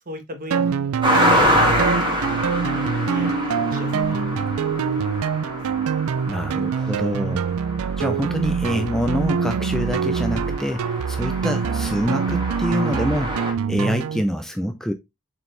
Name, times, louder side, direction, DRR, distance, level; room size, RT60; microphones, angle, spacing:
voice 1, 0.0-0.9 1.4-2.4 3.1-4.4 4.9-5.2, equal, 40° right, 1.3 m, -38 dB
sound 1, 0.5-14.2, right 6 dB, 65° right, 0.4 m, -25 dB
sound 2, 1.0-13.5, equal, 20° right, 2.2 m, -26 dB
sound 3, 2.5-6.8, left 3 dB, 30° left, 2.3 m, -34 dB
voice 2, 6.3-7.5 8.0-14.9, equal, ahead, 0.5 m, -26 dB
6.8 x 4.4 x 3.2 m
head